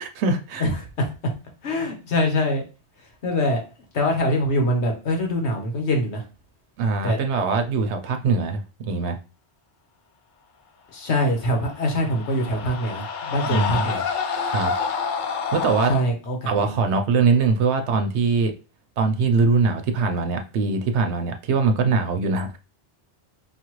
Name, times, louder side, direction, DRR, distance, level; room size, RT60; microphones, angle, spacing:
voice 1, 0.0-0.6 6.8-9.2 13.5-13.9 14.4-14.7 15.5-15.9 16.5-18.5 19.0-22.5, right 4 dB, 80° right, 0.9 m, -22 dB
voice 2, 0.6-1.3 1.6-2.6 3.2-3.6 3.9-6.2 7.0-7.2 10.9-14.0 15.9-16.8, left 1 dB, 75° left, 1.4 m, -24 dB
sound 1, 11.6-16.0, left 5 dB, 55° left, 0.6 m, -28 dB
5.7 x 2.4 x 3.0 m
omnidirectional pair, 1.1 m